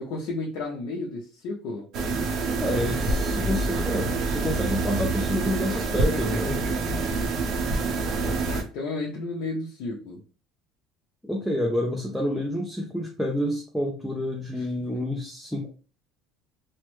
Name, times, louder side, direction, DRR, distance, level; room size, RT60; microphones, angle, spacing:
voice 1, 0.0-1.9 8.5-10.2 14.5-14.7, left 2 dB, 60° left, -3 dB, 0.7 m, -33 dB
sound 1, 1.9-8.6, right 3 dB, 50° right, 0.6 m, -26 dB
voice 2, 2.6-6.6 11.2-15.7, left 1 dB, ahead, -2 dB, 0.4 m, -28 dB
3.2 x 2.1 x 3.1 m, 0.36 s
cardioid pair, 160°, 0 cm